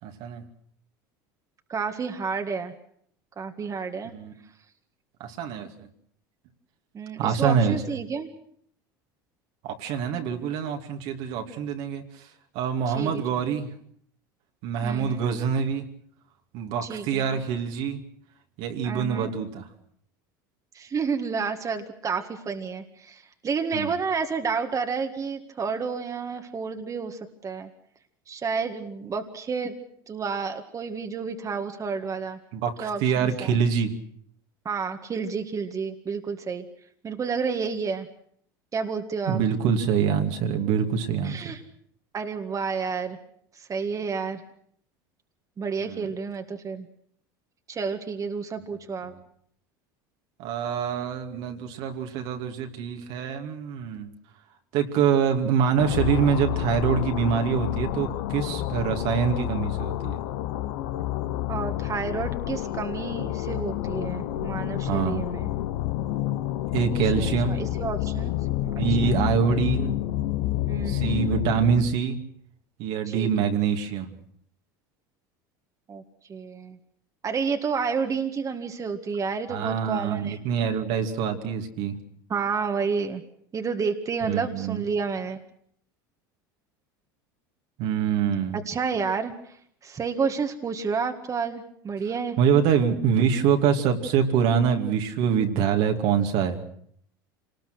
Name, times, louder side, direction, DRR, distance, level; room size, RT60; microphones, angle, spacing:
voice 1, 0.0-0.4 4.0-4.3 5.2-5.9 7.2-8.0 9.6-13.7 14.6-15.9 16.5-18.0 18.6-19.7 23.7-23.9 32.5-33.9 39.3-41.4 45.8-46.1 49.1-49.2 50.4-54.1 54.7-60.2 64.8-65.2 66.7-67.6 68.6-69.9 70.9-72.2 72.8-74.1 79.5-82.0 84.2-84.8 87.8-88.6 92.4-96.6, right 7 dB, 65° right, 4 dB, 2.6 m, -25 dB
voice 2, 1.7-2.7 3.4-4.1 6.9-8.3 13.0-13.2 14.8-15.3 16.9-17.4 18.8-19.3 20.7-27.7 28.3-29.7 30.1-32.4 32.8-33.6 34.7-36.6 37.0-38.1 38.7-39.4 41.2-41.6 42.1-43.2 43.6-44.4 45.6-46.9 47.7-49.1 61.5-65.5 66.8-66.9 67.2-68.3 69.0-69.2 70.7-71.1 73.1-73.5 75.9-76.0 76.3-76.8 77.2-80.4 82.3-83.2 83.5-85.4 88.7-89.3 89.8-92.4, right 5 dB, 30° right, 6 dB, 1.9 m, -30 dB
sound 1, 55.8-72.0, left 14 dB, 70° left, 1.2 m, -29 dB
26.5 x 19.5 x 6.3 m, 0.64 s
hypercardioid pair, 90°, 11 cm